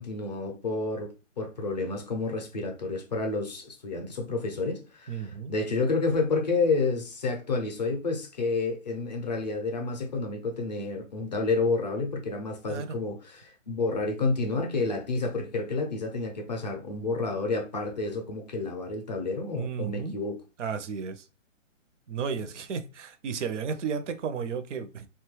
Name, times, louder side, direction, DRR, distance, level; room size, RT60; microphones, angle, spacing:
voice 1, 0.0-20.4, left 3 dB, 35° left, 0.4 m, -30 dB
voice 2, 5.1-5.5 12.7-13.0 19.5-20.2 20.6-21.2 22.1-25.1, right 6 dB, 65° right, 0.5 m, -33 dB
2.8 x 2.3 x 3.0 m
hypercardioid pair, 160°, 39 cm